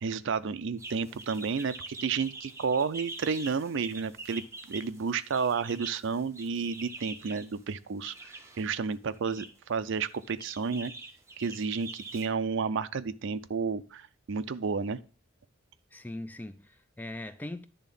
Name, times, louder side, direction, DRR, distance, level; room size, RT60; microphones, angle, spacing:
voice 1, 0.0-10.9 11.4-15.0, right 5 dB, 60° right, 0.4 m, -31 dB
sound 1, 0.8-7.5 8.0-8.7 9.1-9.5 10.0-12.3, right 2 dB, 15° right, 0.9 m, -45 dB
voice 2, 15.9-17.7, left 1 dB, 10° left, 0.3 m, -40 dB
10.5 x 3.5 x 5.3 m
head